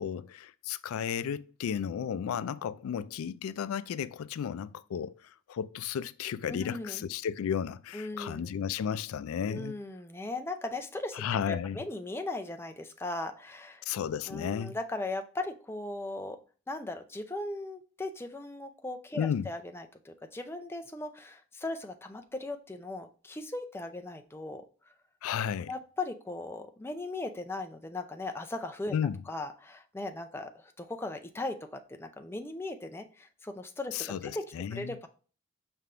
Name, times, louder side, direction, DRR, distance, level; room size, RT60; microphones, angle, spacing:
voice 1, 0.0-9.8 11.1-11.8 13.9-14.8 19.2-19.5 25.2-25.7 28.9-29.2 33.9-35.0, left 8 dB, 90° left, 0.3 m, -33 dB
voice 2, 6.5-7.0 7.9-8.5 9.5-13.8 14.3-16.4 16.7-24.9 25.7-28.9 29.3-35.1, left 2 dB, 10° left, 0.4 m, -38 dB
5.5 x 3.4 x 2.5 m
head